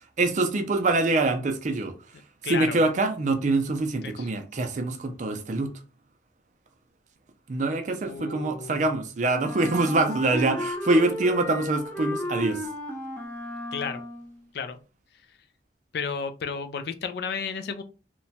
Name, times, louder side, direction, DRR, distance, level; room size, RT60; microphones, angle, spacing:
voice 1, 0.2-1.9 2.5-5.7 7.5-12.7, right 2 dB, 45° right, 0.4 m, -25 dB
voice 2, 2.4-2.8 4.0-4.3 8.1-8.8 13.7-14.0 14.5-14.8 15.9-17.8, left 5 dB, 60° left, 0.3 m, -32 dB
Wind instrument woodwind instrument, 9.4-14.4, left 1 dB, 10° left, 0.5 m, -34 dB
2.9 x 2.2 x 2.7 m
head